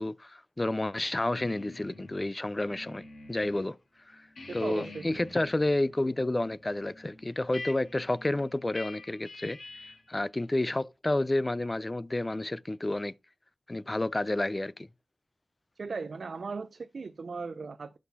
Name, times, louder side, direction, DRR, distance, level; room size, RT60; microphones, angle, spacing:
voice 1, 0.0-3.0 3.3-3.8 4.1-4.3 4.5-13.1 13.7-14.9, left 2 dB, 20° left, 0.3 m, -30 dB
sound 1, 1.2-3.6 4.0-10.1, left 2 dB, 55° left, 2.1 m, -47 dB
voice 2, 4.5-5.2 15.8-18.0, right 4 dB, 55° right, 0.4 m, -38 dB
6.0 x 5.7 x 4.1 m
wide cardioid pair, 150°, 0 cm